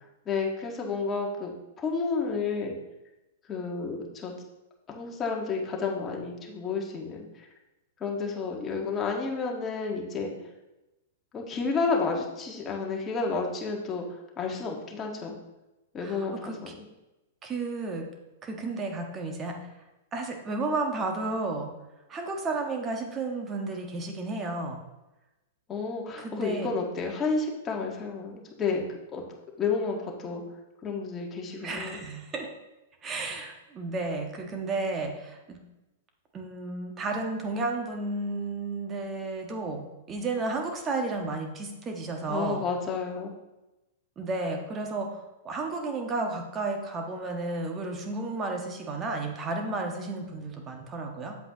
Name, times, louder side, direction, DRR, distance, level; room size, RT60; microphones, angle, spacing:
voice 1, 0.2-2.7 3.5-4.3 4.9-7.2 8.0-10.3 11.3-15.3 15.9-16.8 25.7-28.8 29.1-29.2 29.6-30.4 30.8-32.0 42.3-43.3, left 4 dB, 25° left, 0 dB, 1.6 m, -31 dB
voice 2, 16.0-16.6 17.4-18.1 18.4-19.7 20.1-21.7 22.1-24.8 26.2-26.7 31.6-32.5 33.0-35.6 36.3-42.7 44.2-51.4, right 3 dB, 25° right, 3 dB, 1.4 m, -32 dB
8.1 x 7.8 x 3.0 m, 1.0 s
figure-of-eight pair, 105°, 0 cm